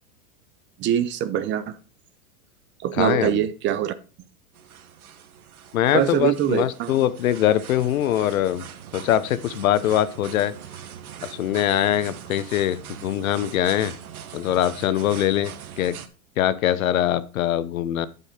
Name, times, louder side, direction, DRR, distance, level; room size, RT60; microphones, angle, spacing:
voice 1, 0.8-1.8 2.8-3.9 5.9-6.9, right 11 dB, 25° right, 12 dB, 0.7 m, -23 dB
voice 2, 3.0-3.4 5.7-8.7 8.9-10.5 11.2-14.0 14.3-16.0 16.4-18.1, left 11 dB, 75° left, 16 dB, 1.0 m, -23 dB
sound 1, 4.5-16.1, right 9 dB, 90° right, 1.4 m, -41 dB
11.5 x 5.6 x 4.3 m, 0.35 s
hypercardioid pair, 130°, 42 cm